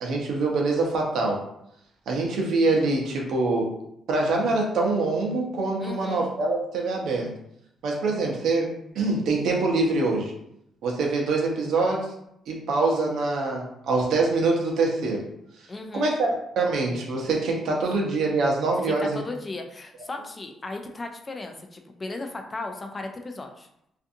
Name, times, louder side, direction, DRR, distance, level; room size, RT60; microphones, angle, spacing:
voice 1, 0.0-1.4 2.1-3.8 4.1-7.3 7.8-10.3 10.8-12.1 12.5-15.3 15.9-19.2, right 3 dB, 75° right, 0 dB, 0.7 m, -24 dB
voice 2, 5.8-6.3 15.7-16.1 18.8-23.7, left 2 dB, 30° left, 4 dB, 0.4 m, -36 dB
2.5 x 2.4 x 2.6 m, 0.77 s
cardioid pair, 90°, 0 cm